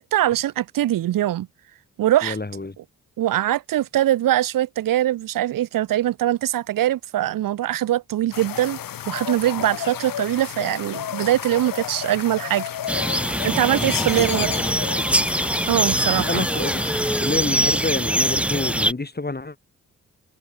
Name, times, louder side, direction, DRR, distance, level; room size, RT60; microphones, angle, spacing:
voice 1, 0.0-1.5 2.0-2.4 2.8-2.9 3.2-8.8 9.1-12.6 13.4-14.5 15.7-16.5, right 13 dB, 70° right, 0.8 m, -22 dB
voice 2, 2.2-2.7 13.7-14.3 14.6-15.2 16.2-16.8 17.2-19.6, left 3 dB, 30° left, 5.0 m, -28 dB
sound 1, 8.3-17.2, left 10 dB, 75° left, 2.7 m, -32 dB
sound 2, 12.9-18.9, right 1 dB, 5° right, 0.7 m, -23 dB
supercardioid pair, 50°, 34 cm